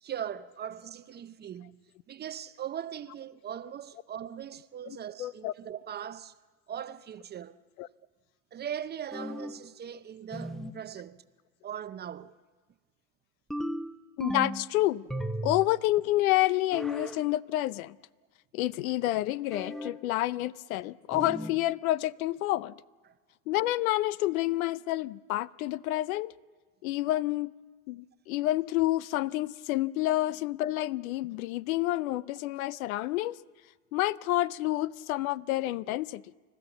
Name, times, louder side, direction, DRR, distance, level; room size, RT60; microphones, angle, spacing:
voice 1, 0.0-6.3 6.7-7.6 8.5-11.3 11.6-12.3 23.0-23.1, right 9 dB, 25° right, 0.6 m, -40 dB
voice 2, 4.9-5.5 7.8-7.9 14.2-15.0 15.4-18.0 18.5-22.7 23.5-26.3 26.8-27.5 27.9-33.4 33.9-36.2, left 16 dB, 70° left, 0.7 m, -29 dB
sound 1, 9.1-9.7 10.3-10.8 13.5-14.7 15.1-15.8 16.7-17.2 19.5-20.0 21.1-21.6, equal, ahead, 0.9 m, -36 dB
30.0 x 13.5 x 7.1 m
hypercardioid pair, 95°, 44 cm